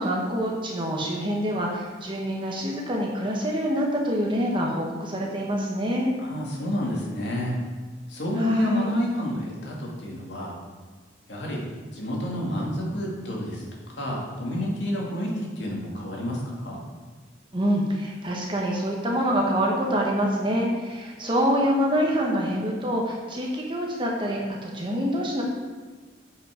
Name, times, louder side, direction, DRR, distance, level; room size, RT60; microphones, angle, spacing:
voice 1, 0.0-6.1 8.4-8.9 17.5-25.4, equal, 25° right, -2 dB, 1.3 m, -26 dB
voice 2, 6.2-7.6 8.1-10.6 11.3-11.6 11.9-13.6 14.0-16.8, equal, 75° left, -3 dB, 2.2 m, -29 dB
8.1 x 5.8 x 5.1 m, 1.4 s
head